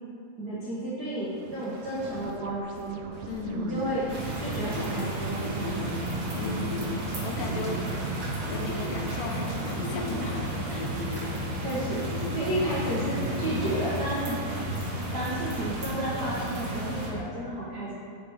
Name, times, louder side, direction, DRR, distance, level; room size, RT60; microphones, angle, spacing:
voice 1, 0.4-3.0 3.5-4.0 4.4-5.8 11.6-12.0 12.3-14.4 15.1-17.9, right 1 dB, 65° right, -9 dB, 1.0 m, -32 dB
sound 1, 1.2-6.9, right 5 dB, 80° right, 2.0 m, -45 dB
Bird, 3.1-15.8, left 2 dB, 35° left, 2.4 m, -40 dB
voice 2, 3.3-3.9 6.3-10.9, left 3 dB, 75° left, 2 dB, 2.2 m, -36 dB
sound 2, 4.1-17.1, right 1 dB, 45° right, 2.2 m, -32 dB
9.2 x 5.7 x 4.9 m, 2.5 s
omnidirectional pair, 4.3 m